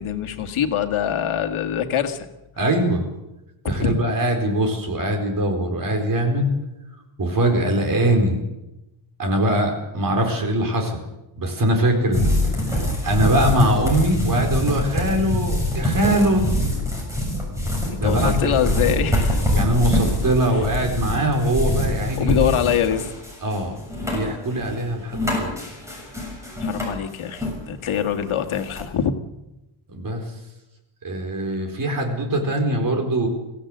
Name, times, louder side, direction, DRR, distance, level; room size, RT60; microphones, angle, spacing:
voice 1, 0.0-2.3 3.6-4.0 18.0-19.4 20.5-20.6 22.2-23.0 26.6-29.1, left 8 dB, 75° left, 6 dB, 2.0 m, -24 dB
voice 2, 2.6-3.0 3.6-6.5 7.2-8.4 9.2-11.0 11.4-12.3 12.7-16.5 18.0-18.5 19.5-22.5 23.4-23.8 24.1-25.5 29.9-30.2 31.0-33.3, right 1 dB, 40° right, 4 dB, 4.4 m, -22 dB
sound 1, 12.1-27.6 27.8-28.8, left 1 dB, 5° right, 6.9 m, -24 dB
23.5 x 16.0 x 7.9 m, 0.96 s
wide cardioid pair, 175°, 49 cm